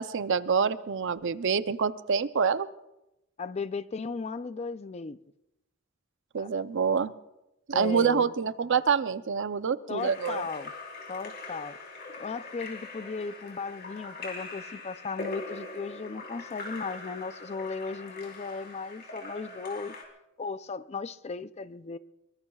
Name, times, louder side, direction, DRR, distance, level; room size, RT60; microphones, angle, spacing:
voice 1, 0.0-2.7 6.3-7.1 7.7-10.5, right 6 dB, 60° right, 0.5 m, -26 dB
voice 2, 3.4-5.2 6.4-6.5 7.7-8.3 9.9-10.7 11.1-11.8 12.2-19.9 20.4-22.0, left 4 dB, 30° left, 0.4 m, -36 dB
Splash splatter / Drip / Trickle dribble, 10.0-20.0, left 3 dB, 50° left, 3.6 m, -42 dB
23.0 x 23.0 x 2.3 m
head